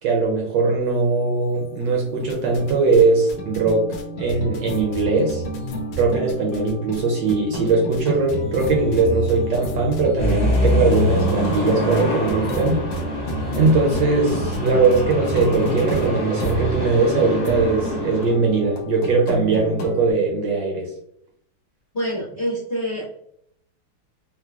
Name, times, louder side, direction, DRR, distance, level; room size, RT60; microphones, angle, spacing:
voice 1, 0.0-5.4 5.9-12.8 13.6-20.9, right 3 dB, 70° right, -1 dB, 1.2 m, -20 dB
sound 1, 1.2-1.3 1.5-20.1, equal, 70° left, 0.8 m, -32 dB
sound 2, 2.3-3.0 3.3-7.0 7.3-8.0 8.3-16.1, right 1 dB, 90° left, 1.6 m, -32 dB
sound 3, 10.2-18.3, left 1 dB, 45° left, 0.5 m, -25 dB
voice 2, 21.9-23.0, equal, 30° left, -10 dB, 1.2 m, -26 dB
3.7 x 2.9 x 2.4 m, 0.71 s
omnidirectional pair, 2.3 m